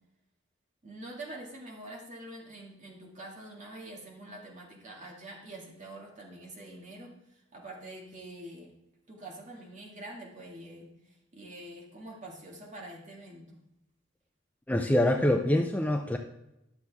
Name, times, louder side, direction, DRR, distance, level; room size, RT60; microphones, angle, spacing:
voice 1, 0.8-8.7 9.1-13.6, right 1 dB, 40° right, -2 dB, 2.3 m, -46 dB
voice 2, 14.7-16.2, left 1 dB, 10° left, 4 dB, 0.5 m, -25 dB
11.5 x 7.4 x 3.6 m, 0.88 s
head